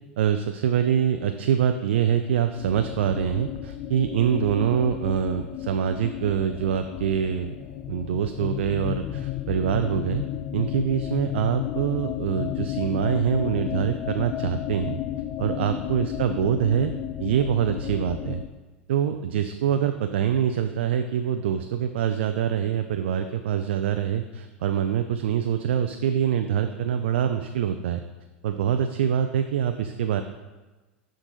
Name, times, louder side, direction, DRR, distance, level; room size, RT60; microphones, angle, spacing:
voice 1, 0.2-7.6 7.9-10.2 10.5-15.0 15.4-16.9 17.2-18.4 18.9-28.0 28.4-30.2, right 9 dB, 70° right, 8 dB, 0.4 m, -25 dB
sound 1, 2.6-18.5, left 13 dB, 45° left, 0.4 m, -33 dB
11.5 x 3.9 x 3.9 m, 1.2 s
hypercardioid pair, 85°, 6 cm